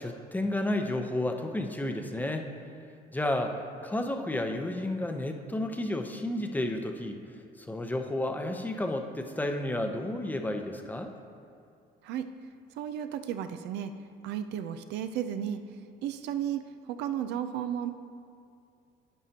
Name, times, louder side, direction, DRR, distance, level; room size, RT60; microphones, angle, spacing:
voice 1, 0.0-2.5 3.1-7.2 7.6-11.1, left 1 dB, 10° left, 5 dB, 0.7 m, -31 dB
voice 2, 12.0-12.3 12.8-13.9 14.2-15.6 16.0-17.9, right 9 dB, 85° right, 9 dB, 0.5 m, -34 dB
11.0 x 9.3 x 2.9 m, 2.4 s
cardioid pair, 110°, 17 cm